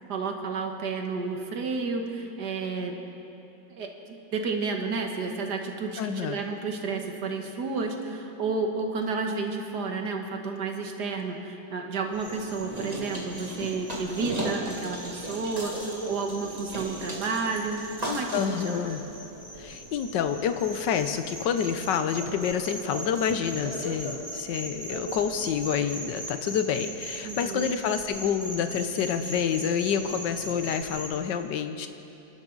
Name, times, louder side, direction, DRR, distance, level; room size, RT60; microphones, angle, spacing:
voice 1, 0.1-3.0 3.7-18.8 27.2-27.7, right 4 dB, 70° right, 3 dB, 1.9 m, -31 dB
voice 2, 6.0-6.4 18.3-19.0 19.6-31.9, left 7 dB, 85° left, 9 dB, 1.5 m, -28 dB
sound 1, 12.1-31.2, right 1 dB, 20° right, 2.0 m, -37 dB
29.5 x 12.0 x 4.0 m, 2.9 s
omnidirectional pair, 1.9 m